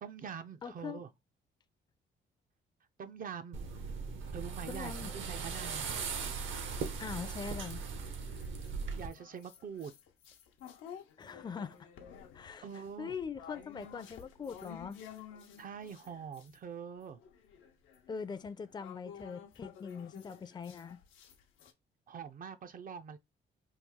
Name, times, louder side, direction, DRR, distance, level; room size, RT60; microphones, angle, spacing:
voice 1, 0.0-1.1 3.0-4.0 4.3-5.9 8.3-8.4 9.0-9.9 12.6-13.1 15.6-17.2 22.1-23.2, right 7 dB, 45° right, 0.4 m, -44 dB
voice 2, 0.6-1.0 4.7-5.1 7.0-7.8 11.2-11.9 12.3-15.0 18.1-21.0, left 6 dB, 20° left, 0.4 m, -42 dB
sound 1, 3.5-9.1, right 5 dB, 75° right, 0.8 m, -39 dB
sound 2, 5.8-7.1 7.7-16.6 17.0-21.7, left 8 dB, 90° left, 0.7 m, -53 dB
3.1 x 2.3 x 3.5 m
cardioid pair, 90°, 20 cm